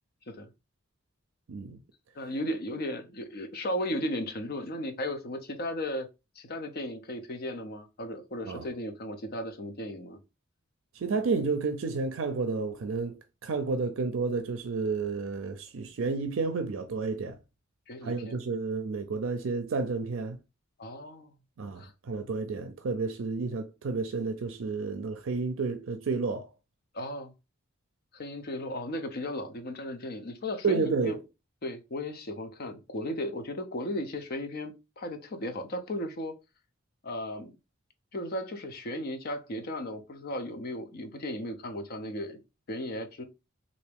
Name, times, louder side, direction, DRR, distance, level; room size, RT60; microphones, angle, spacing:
voice 1, 1.5-1.8 8.5-8.7 10.9-17.4 18.0-20.4 21.6-26.5 30.6-31.2, right 4 dB, 65° right, 0.5 m, -31 dB
voice 2, 2.1-6.1 6.4-10.2 17.9-18.4 20.8-21.3 21.8-21.9 26.9-27.3 28.1-31.2 31.6-36.4 37.0-37.5 38.1-42.4 42.7-43.2, left 1 dB, 45° left, 0.6 m, -35 dB
3.4 x 2.6 x 3.4 m
head